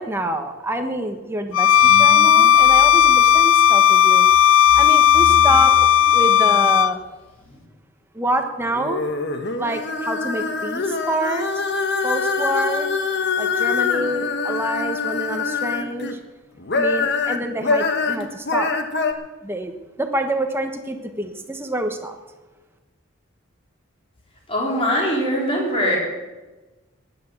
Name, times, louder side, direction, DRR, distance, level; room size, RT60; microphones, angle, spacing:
voice 1, 0.0-4.3 4.7-5.7 6.1-7.0 8.1-9.0 9.6-11.5 12.0-12.9 13.3-16.2 16.7-18.7 19.4-22.2, right 1 dB, 10° right, 4 dB, 1.3 m, -27 dB
Bowed string instrument, 1.5-7.0, left 9 dB, 80° left, 0.5 m, -14 dB
sound 1, 1.7-3.7 4.2-6.8 7.1-7.7, left 1 dB, 5° left, 3.9 m, -36 dB
sound 2, 8.7-16.1 16.6-19.1, left 4 dB, 55° left, 1.2 m, -24 dB
voice 2, 24.5-26.0, equal, 25° left, -3 dB, 3.9 m, -21 dB
14.5 x 10.0 x 7.2 m, 1.2 s
head